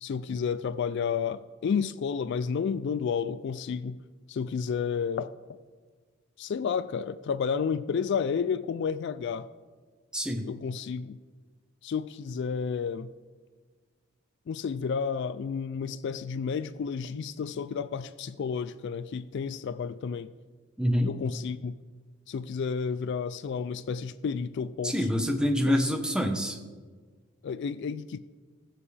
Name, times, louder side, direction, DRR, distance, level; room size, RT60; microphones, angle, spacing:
voice 1, 0.0-4.0 4.3-5.3 6.4-9.5 10.4-11.2 11.8-13.1 14.5-20.3 21.0-21.8 22.3-25.0 25.6-25.8 27.4-28.2, left 6 dB, 55° left, 15 dB, 0.3 m, -31 dB
voice 2, 10.1-10.5 20.8-21.1 24.8-26.6, equal, 5° right, 4 dB, 0.9 m, -26 dB
19.5 x 7.5 x 3.3 m, 1.5 s
head